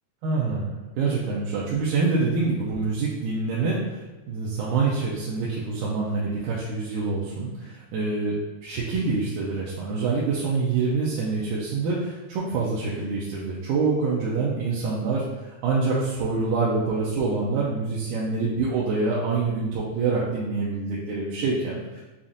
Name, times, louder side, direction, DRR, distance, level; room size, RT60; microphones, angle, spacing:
voice 1, 0.2-4.0 4.3-22.0, right 4 dB, 80° right, -5 dB, 2.0 m, -26 dB
7.1 x 2.5 x 2.6 m, 1.2 s
omnidirectional pair, 3.6 m